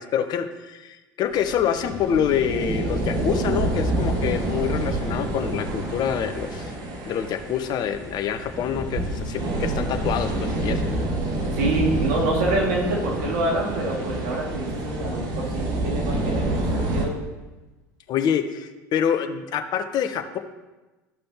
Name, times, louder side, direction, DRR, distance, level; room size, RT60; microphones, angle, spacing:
voice 1, 0.0-6.7 7.1-10.8 18.1-20.4, left 8 dB, 45° left, 7 dB, 0.9 m, -26 dB
sound 1, 1.3-17.0, right 1 dB, 50° right, 1.7 m, -27 dB
voice 2, 11.5-17.1, right 2 dB, 65° right, -2 dB, 2.1 m, -26 dB
13.5 x 5.4 x 2.9 m, 1.1 s
hypercardioid pair, 75°, 9 cm